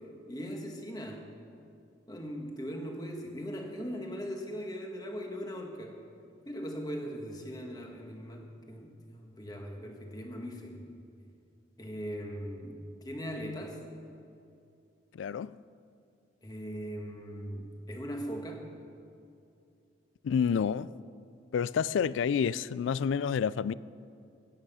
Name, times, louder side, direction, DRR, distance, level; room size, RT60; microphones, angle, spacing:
voice 1, 0.3-1.3 2.1-6.0 6.4-10.9 11.8-12.8 13.0-13.8 16.4-18.6, equal, 20° left, 1.4 m, -39 dB
voice 2, 15.1-15.6 20.2-20.9 21.5-23.7, left 7 dB, 80° left, 0.3 m, -29 dB
16.0 x 9.0 x 5.6 m
head